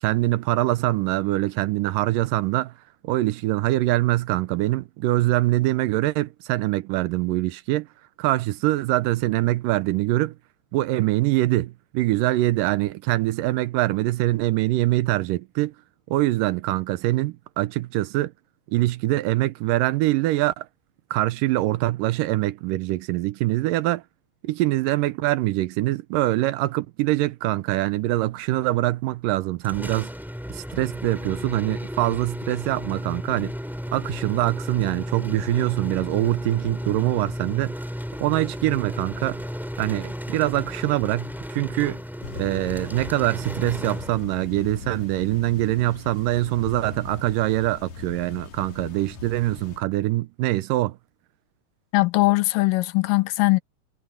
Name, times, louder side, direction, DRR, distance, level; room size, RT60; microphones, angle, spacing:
voice 1, 0.0-2.7 3.0-7.9 8.2-10.4 10.7-15.7 16.1-18.3 18.7-20.7 21.1-24.0 24.4-30.1 30.5-33.5 33.9-37.7 38.2-39.4 39.8-42.0 42.3-51.0, right 17 dB, 85° right, 2.3 m, -24 dB
sound 1, 29.6-44.6, equal, ahead, 2.0 m, -34 dB
sound 2, 42.2-49.8, left 5 dB, 60° left, 3.3 m, -39 dB
voice 2, 51.9-53.6, left 21 dB, 80° left, 2.3 m, -20 dB
omnidirectional pair, 3.9 m